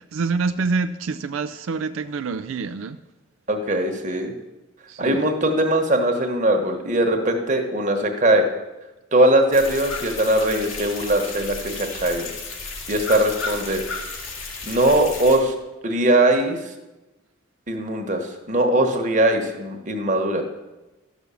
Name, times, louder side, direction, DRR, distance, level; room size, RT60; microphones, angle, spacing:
voice 1, 0.0-3.0 4.9-5.3, right 4 dB, 85° right, 11 dB, 0.4 m, -26 dB
voice 2, 3.5-4.3 5.0-8.5 9.1-12.3 12.9-13.8 14.6-15.5 15.8-16.6 17.7-20.4, right 1 dB, 40° right, 4 dB, 1.2 m, -20 dB
sound 1, 9.5-15.4, left 3 dB, 85° left, 2.3 m, -33 dB
12.5 x 6.2 x 6.9 m, 1.1 s
head